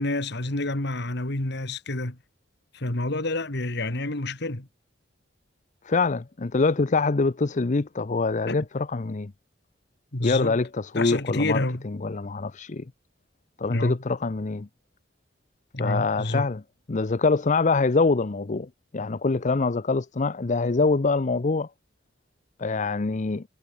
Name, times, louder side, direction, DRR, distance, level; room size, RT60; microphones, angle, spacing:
voice 1, 0.0-2.2 2.7-4.7 8.5-8.7 10.1-10.6 10.9-11.8 13.7-14.0 15.7-16.5, left 2 dB, 65° left, 2.5 m, -28 dB
voice 2, 5.8-9.3 10.2-11.6 12.0-12.8 13.6-14.7 15.8-16.6 16.9-21.7 22.6-23.4, left 3 dB, 40° left, 0.6 m, -24 dB
head